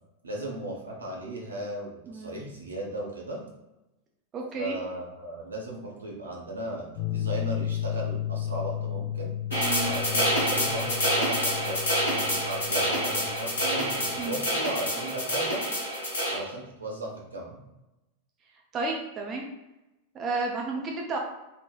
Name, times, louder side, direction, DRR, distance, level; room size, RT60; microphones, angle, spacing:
voice 1, 0.2-3.4 4.5-9.3 9.8-15.6 16.3-17.6, right 1 dB, 75° right, -2 dB, 0.7 m, -36 dB
voice 2, 2.1-2.4 4.3-4.8 9.6-9.9 14.2-14.4 18.7-19.5 20.1-21.2, right 3 dB, 30° right, 0 dB, 0.4 m, -32 dB
sound 1, 7.0-14.2, left 11 dB, 50° left, 0.5 m, -34 dB
sound 2, 9.5-16.4, equal, 70° left, 1.0 m, -27 dB
3.3 x 2.1 x 2.3 m, 0.96 s
figure-of-eight pair, 90°, 0 cm